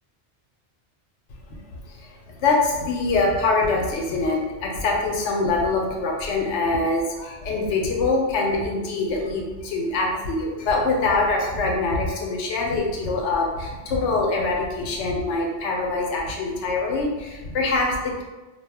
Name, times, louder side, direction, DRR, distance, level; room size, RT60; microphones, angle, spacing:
voice 1, 1.7-18.2, left 3 dB, 90° left, -1 dB, 0.9 m, -24 dB
2.3 x 2.0 x 3.3 m, 1.2 s
omnidirectional pair, 1.2 m